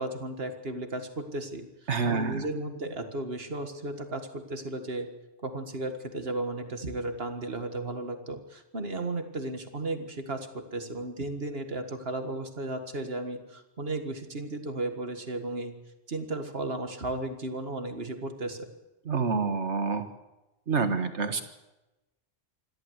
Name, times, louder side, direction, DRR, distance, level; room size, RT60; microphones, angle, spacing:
voice 1, 0.0-1.7 2.0-5.1 5.4-15.7 16.1-18.7, right 2 dB, 55° right, 7 dB, 2.1 m, -34 dB
voice 2, 1.9-2.4 19.1-20.1 20.7-21.4, right 5 dB, 75° right, 8 dB, 1.9 m, -27 dB
26.5 x 12.5 x 8.1 m, 1.0 s
omnidirectional pair, 1.2 m